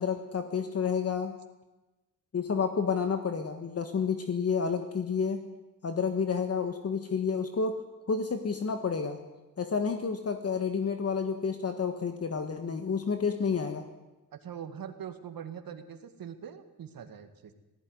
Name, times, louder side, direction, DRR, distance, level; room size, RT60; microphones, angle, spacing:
voice 1, 0.0-1.3 2.3-5.4 5.8-7.8 8.1-9.2 9.6-13.8, left 6 dB, 40° left, 6 dB, 1.5 m, -30 dB
voice 2, 14.3-17.5, right 8 dB, 70° right, 8 dB, 2.0 m, -42 dB
18.5 x 15.5 x 9.6 m, 1.1 s
wide cardioid pair, 140°, 36 cm